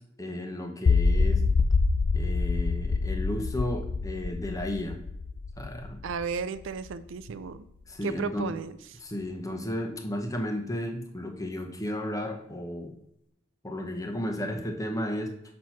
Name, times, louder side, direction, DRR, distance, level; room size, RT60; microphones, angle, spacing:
voice 1, 0.2-1.4 2.1-5.0 5.6-6.0 7.9-8.5 9.0-12.9 13.6-15.3, left 1 dB, 15° left, 3 dB, 0.9 m, -33 dB
sound 1, 0.9-6.9, left 4 dB, 40° left, 0.3 m, -26 dB
voice 2, 6.0-7.7 8.0-8.7, right 5 dB, 65° right, 13 dB, 0.4 m, -33 dB
6.2 x 4.3 x 5.9 m, 0.77 s
head